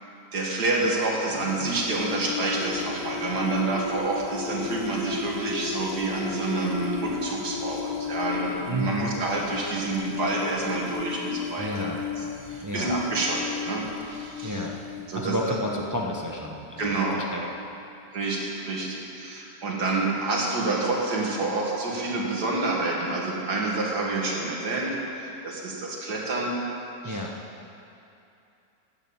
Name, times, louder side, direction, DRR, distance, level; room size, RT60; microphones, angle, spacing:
voice 1, 0.3-11.9 12.2-14.7 15.1-15.6 16.8-17.2 18.1-26.5 27.0-27.2, right 2 dB, 70° right, -3 dB, 2.5 m, -28 dB
sound 1, 1.3-17.7, left 6 dB, 45° left, 0.9 m, -35 dB
voice 2, 8.7-9.1 11.6-12.0 12.6-12.9 14.4-14.7 15.1-17.4 27.0-27.3, equal, 25° right, 0 dB, 0.4 m, -31 dB
12.0 x 7.0 x 8.8 m, 2.7 s
omnidirectional pair, 1.8 m